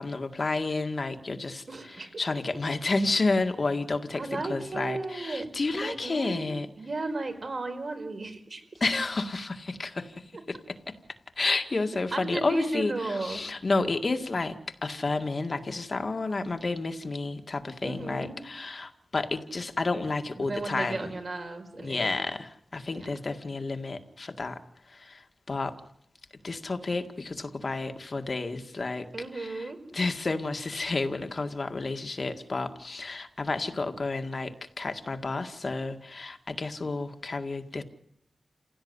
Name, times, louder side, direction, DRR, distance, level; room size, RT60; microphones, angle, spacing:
voice 1, 0.0-6.7 8.8-10.9 11.4-14.6 14.8-21.1 21.8-24.6 24.9-25.8 26.4-29.1 29.3-37.8, left 3 dB, 45° left, 6 dB, 1.9 m, -31 dB
voice 2, 1.7-2.1 2.5-2.6 4.1-5.5 5.8-6.5 6.8-8.6 12.1-13.5 17.8-18.4 20.4-22.1 22.9-23.1 29.1-29.8, right 3 dB, 50° right, 6 dB, 4.9 m, -34 dB
29.0 x 17.0 x 9.7 m, 0.74 s
wide cardioid pair, 115°, 0 cm